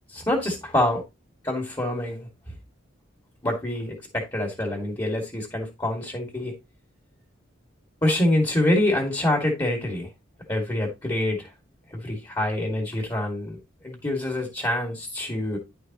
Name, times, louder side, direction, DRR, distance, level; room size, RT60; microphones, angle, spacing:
voice 1, 0.1-1.0 1.4-2.5 3.4-6.5 8.0-10.1 10.5-11.5 11.9-13.6 13.8-15.6, left 1 dB, 20° left, 2.1 m, -26 dB
10.5 x 6.6 x 3.0 m
head